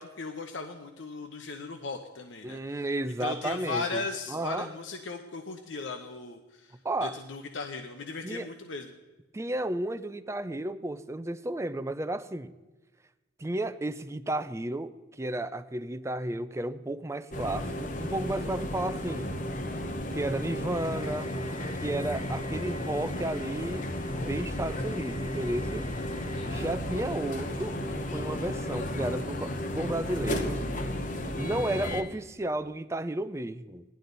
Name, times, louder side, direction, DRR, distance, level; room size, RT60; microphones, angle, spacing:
voice 1, 0.0-2.8 3.2-6.7 7.0-8.9 26.3-26.6, left 3 dB, 80° left, 5 dB, 0.9 m, -37 dB
voice 2, 2.4-4.7 6.8-7.2 8.2-8.5 9.3-12.5 13.4-19.3 20.1-21.3 21.8-23.9 24.2-25.9 26.3-30.6 31.4-33.8, right 1 dB, 15° right, 12 dB, 0.4 m, -33 dB
sound 1, 17.3-32.0, left 1 dB, 40° left, 1.0 m, -33 dB
17.0 x 11.5 x 4.0 m, 1.1 s
head